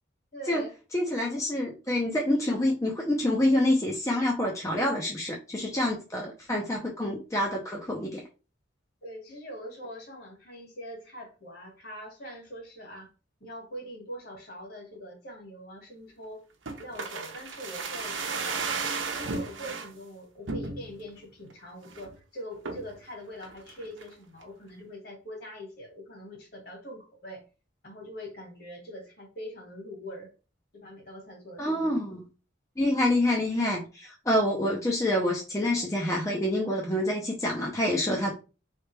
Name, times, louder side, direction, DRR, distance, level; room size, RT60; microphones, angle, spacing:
voice 1, 0.3-0.7 9.0-13.1 13.4-16.4 16.8-18.7 19.2-27.4 27.8-30.3 30.7-32.0, equal, 50° left, 0 dB, 1.9 m, -43 dB
voice 2, 0.9-8.2 31.6-32.2 32.8-38.3, left 1 dB, 15° left, -2 dB, 0.6 m, -27 dB
sound 1, 16.7-19.9 20.5-21.1 21.5-21.6 21.8-22.2 22.7-23.0 23.4-24.1 24.4-24.5, right 4 dB, 75° right, 0.8 m, -34 dB
3.8 x 3.3 x 3.3 m, 0.32 s
head